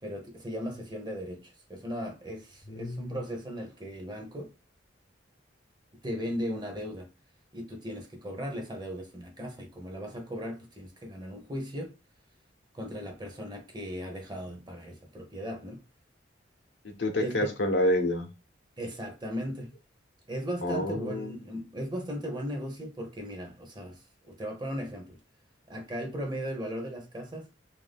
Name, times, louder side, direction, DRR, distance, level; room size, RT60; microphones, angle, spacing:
voice 1, 0.0-4.5 6.0-7.1 7.5-11.9 12.7-15.8 17.2-17.5 18.8-19.7 20.3-25.2 25.7-27.5, equal, 20° right, 0.7 m, -37 dB
voice 2, 2.7-3.2 16.8-18.3 20.6-21.4, left 1 dB, 70° left, 0.7 m, -28 dB
2.5 x 2.2 x 3.4 m
head